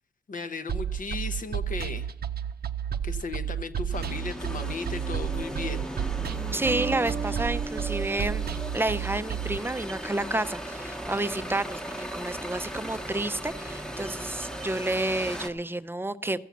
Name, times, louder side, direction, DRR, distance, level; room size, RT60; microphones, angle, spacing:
voice 1, 0.3-2.1 3.0-5.8, left 4 dB, 60° left, 10 dB, 0.8 m, -36 dB
sound 1, 0.7-9.6, right 8 dB, 85° right, 0.5 m, -32 dB
sound 2, 3.9-15.5, right 1 dB, 5° left, 0.9 m, -37 dB
voice 2, 6.5-8.5 8.7-16.4, right 2 dB, 15° right, 12 dB, 0.4 m, -30 dB
Bass guitar, 6.6-10.2, right 3 dB, 50° right, 0.8 m, -38 dB
14.5 x 7.1 x 7.1 m, 0.77 s
wide cardioid pair, 165°, 16 cm